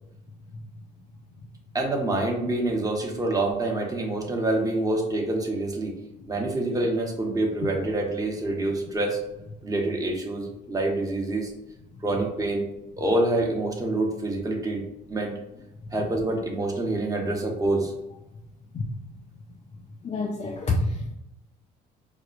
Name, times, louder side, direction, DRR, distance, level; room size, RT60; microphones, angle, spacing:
voice 1, 1.7-5.9 6.3-9.2 9.6-11.5 12.0-12.6 13.0-14.8 15.1-15.3 15.9-17.9, right 2 dB, 15° right, 0 dB, 0.9 m, -26 dB
voice 2, 20.0-21.2, left 2 dB, 30° left, 0 dB, 0.5 m, -28 dB
4.6 x 2.1 x 2.4 m, 0.92 s
supercardioid pair, 70°, 20 cm